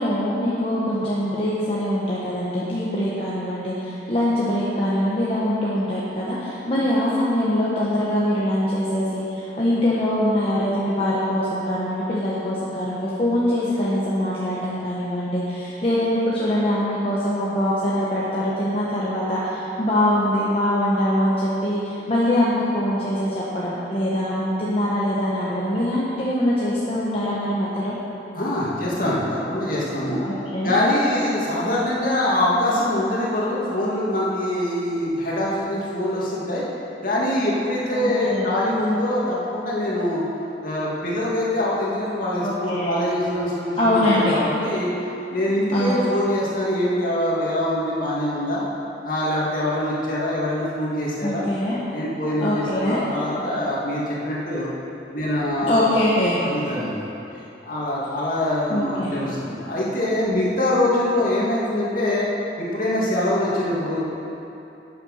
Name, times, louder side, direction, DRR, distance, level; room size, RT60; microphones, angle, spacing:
voice 1, 0.0-27.9 30.2-30.7 37.9-38.6 42.4-42.9 43.8-44.3 45.7-46.0 51.2-51.8 52.2-53.3 55.6-56.4 58.2-58.3 58.7-59.2, left 1 dB, 30° left, -8 dB, 1.4 m, -23 dB
voice 2, 28.3-30.2 30.6-36.6 37.0-40.2 40.6-44.9 45.3-48.6 49.0-51.4 51.9-54.7 55.1-56.0 56.4-57.0 57.7-62.3 62.6-64.1, left 1 dB, 50° left, -6 dB, 2.6 m, -24 dB
11.5 x 9.0 x 5.7 m, 2.9 s
head